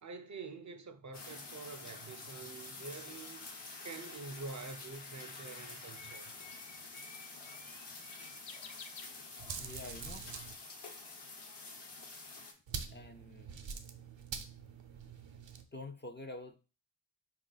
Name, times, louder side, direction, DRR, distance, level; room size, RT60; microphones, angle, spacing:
voice 1, 0.0-3.5 3.8-6.3, right 4 dB, 40° right, 0.5 m, -47 dB
sound 1, 1.1-12.5, left 3 dB, 65° left, 1.0 m, -48 dB
Bird, 3.7-9.7, left 5 dB, 85° left, 0.6 m, -55 dB
sound 2, 9.4-10.5 12.7-15.6, right 6 dB, 85° right, 0.6 m, -45 dB
voice 2, 9.6-10.3 12.9-13.6 15.7-16.6, left 2 dB, 25° left, 0.4 m, -47 dB
4.5 x 2.5 x 3.9 m
wide cardioid pair, 75°, 44 cm